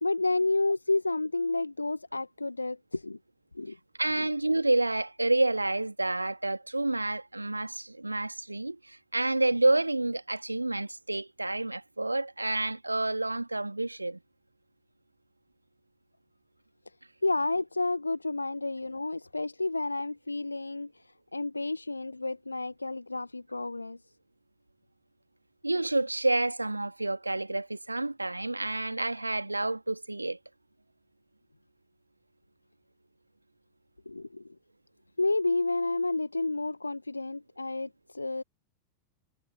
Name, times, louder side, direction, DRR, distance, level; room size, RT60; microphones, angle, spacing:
voice 1, 0.0-3.2 3.5-3.8 4.2-4.3 17.2-24.0 34.0-34.5 35.2-38.4, left 2 dB, 80° left, 1.2 m, -30 dB
voice 2, 4.0-14.2 25.6-30.4, right 2 dB, 85° right, 2.1 m, -29 dB
figure-of-eight pair, 90°, 0 cm